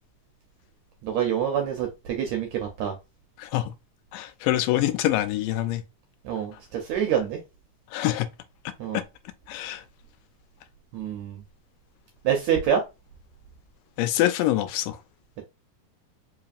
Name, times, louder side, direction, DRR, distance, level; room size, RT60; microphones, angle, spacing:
voice 1, 1.0-2.9 6.2-7.4 8.8-9.0 10.9-11.4 12.2-12.8, right 9 dB, 80° right, 1.6 m, -26 dB
voice 2, 3.4-3.7 4.1-5.8 7.9-8.3 8.9-9.0 9.5-9.8 14.0-15.0, left 14 dB, 85° left, 2.2 m, -25 dB
4.9 x 2.9 x 2.4 m
omnidirectional pair, 3.8 m